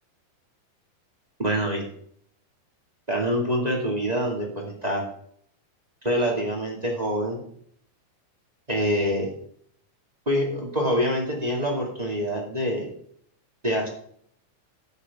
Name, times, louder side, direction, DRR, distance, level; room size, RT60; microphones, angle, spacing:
voice 1, 1.4-1.8 3.1-5.0 6.0-7.4 8.7-9.3 10.2-12.9 13.6-13.9, equal, 15° right, 0 dB, 1.6 m, -25 dB
13.0 x 9.5 x 3.6 m, 0.63 s
omnidirectional pair, 3.9 m